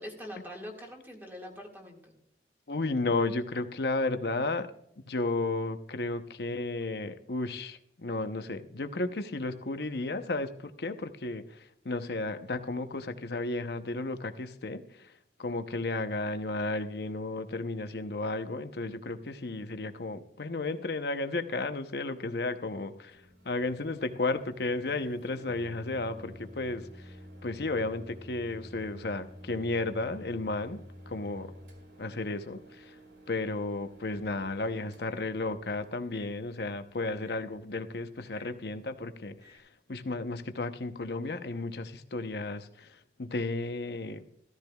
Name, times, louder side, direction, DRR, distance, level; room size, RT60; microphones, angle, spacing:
voice 1, 0.0-2.2, equal, 10° right, 0 dB, 1.9 m, -43 dB
voice 2, 2.7-4.7 5.1-15.1 15.4-27.1 27.4-31.5 32.0-32.9 33.3-44.2, left 2 dB, 65° left, 9 dB, 0.8 m, -33 dB
Microwave oven, 23.1-39.6, equal, 85° right, 2.1 m, -51 dB
14.5 x 13.5 x 2.3 m, 0.73 s
head